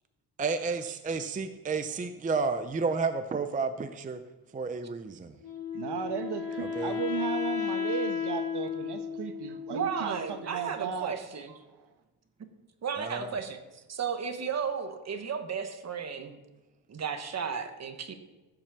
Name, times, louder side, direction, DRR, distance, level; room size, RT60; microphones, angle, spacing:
voice 1, 0.4-4.2 4.5-5.3 6.6-6.9 13.0-13.3, right 4 dB, 20° right, 9 dB, 0.5 m, -31 dB
Wind instrument woodwind instrument, 5.4-10.5, left 7 dB, 60° left, 2.0 m, -34 dB
voice 2, 5.7-11.1, right 8 dB, 75° right, 7 dB, 1.3 m, -35 dB
voice 3, 9.7-11.5 12.8-16.4 16.9-18.1, right 6 dB, 40° right, 7 dB, 1.2 m, -34 dB
15.0 x 5.9 x 6.8 m, 1.1 s
wide cardioid pair, 170°, 40 cm